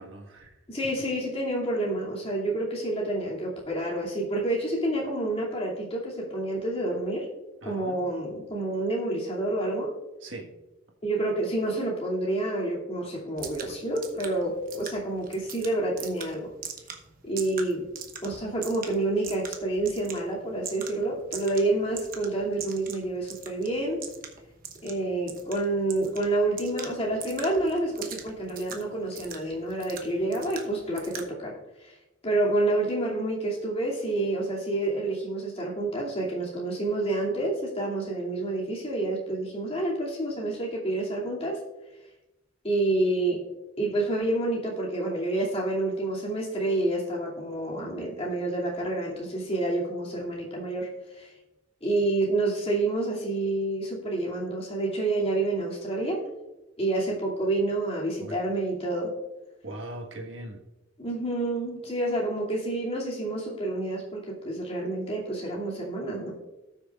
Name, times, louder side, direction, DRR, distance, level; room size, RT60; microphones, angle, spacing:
voice 1, 0.0-1.1 7.6-8.0 10.2-10.5 58.2-58.4 59.6-60.6, right 1 dB, 75° right, 1 dB, 1.6 m, -41 dB
voice 2, 0.7-7.3 7.6-9.9 11.0-16.5 17.2-17.9 18.2-24.0 24.8-31.6 31.8-31.9 32.2-41.6 42.6-43.5 43.8-50.9 51.1-51.3 51.8-56.2 56.8-59.1 61.0-66.3, right 2 dB, 30° left, -4 dB, 2.6 m, -28 dB
sound 1, 13.4-31.3, right 7 dB, 50° right, 1.0 m, -43 dB
18.0 x 6.3 x 2.4 m, 1.0 s
head